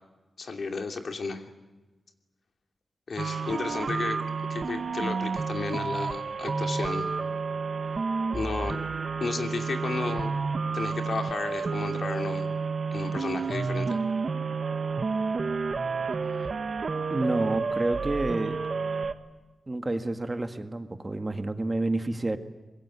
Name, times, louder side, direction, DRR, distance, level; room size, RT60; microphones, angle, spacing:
voice 1, 0.4-1.5 3.1-4.2 4.5-7.1 8.3-8.8 9.2-10.4 10.7-12.5 12.9-14.0, left 4 dB, 60° left, 5 dB, 2.8 m, -33 dB
sound 1, 3.2-19.1, right 4 dB, 55° right, 1.5 m, -30 dB
voice 2, 17.1-18.6 19.7-22.4, right 2 dB, 25° right, 8 dB, 1.8 m, -29 dB
24.5 x 22.0 x 9.9 m, 1.2 s
wide cardioid pair, 115°, 0 cm